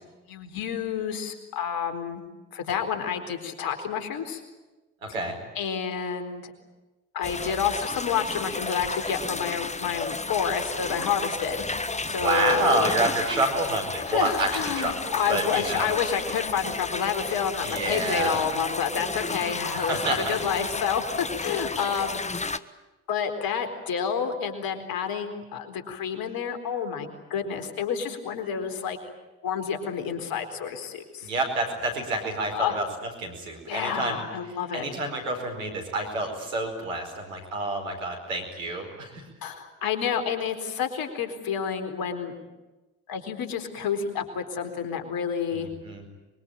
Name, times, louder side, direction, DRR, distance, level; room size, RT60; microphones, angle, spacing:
voice 1, 0.3-2.2 2.5-4.4 5.5-6.5 7.1-11.6 12.1-12.9 14.0-22.3 23.1-29.0 29.4-31.3 32.5-32.8 33.7-34.9 39.4-42.3 43.1-45.7, left 7 dB, 65° left, 7 dB, 4.4 m, -29 dB
voice 2, 5.0-5.4 12.1-14.5 14.7-15.9 17.6-18.4 19.7-20.4 31.2-32.8 33.2-34.2 34.7-39.1 45.5-46.0, right 2 dB, 90° right, 3 dB, 4.8 m, -28 dB
sound 1, 7.2-22.6, left 3 dB, 15° left, 1.4 m, -33 dB
24.5 x 23.0 x 9.1 m, 1.1 s
hypercardioid pair, 45°, 38 cm